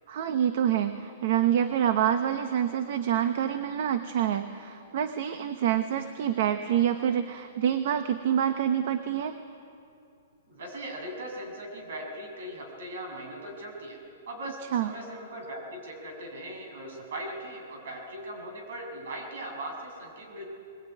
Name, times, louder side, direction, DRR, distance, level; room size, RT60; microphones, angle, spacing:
voice 1, 0.1-9.4 14.7-14.9, right 9 dB, 45° right, 9 dB, 1.0 m, -27 dB
voice 2, 10.5-14.0 14.3-20.5, right 1 dB, 65° right, 3 dB, 7.0 m, -39 dB
21.0 x 20.0 x 9.4 m, 2.6 s
hypercardioid pair, 170°, 0 cm